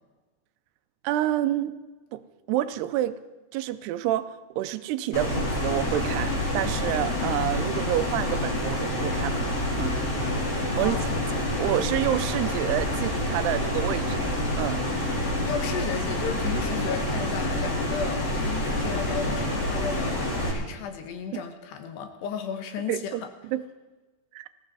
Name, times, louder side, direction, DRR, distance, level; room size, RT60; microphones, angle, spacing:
voice 1, 1.0-1.8 2.1-2.2 2.5-3.2 3.5-9.5 9.8-10.0 10.8-11.1 11.6-14.2 14.6-14.8 21.3-21.4 22.9-23.6 24.3-24.5, right 13 dB, 80° right, 12 dB, 2.6 m, -28 dB
sound 1, 5.1-20.5, left 1 dB, 40° left, 3.8 m, -27 dB
voice 2, 15.5-23.2, left 7 dB, 80° left, 7 dB, 3.2 m, -34 dB
20.5 x 14.5 x 4.1 m, 1.2 s
omnidirectional pair, 4.9 m